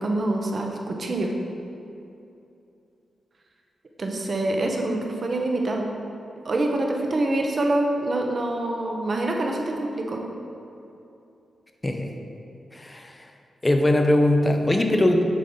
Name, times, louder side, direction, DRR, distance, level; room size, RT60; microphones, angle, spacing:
voice 1, 0.0-1.3 4.0-5.9 6.4-10.2, right 2 dB, 55° right, 1 dB, 0.9 m, -25 dB
voice 2, 11.8-12.1 12.7-13.3 13.6-15.2, left 1 dB, 25° left, 4 dB, 0.7 m, -21 dB
9.2 x 3.7 x 3.9 m, 2.7 s
cardioid pair, 50°, 0 cm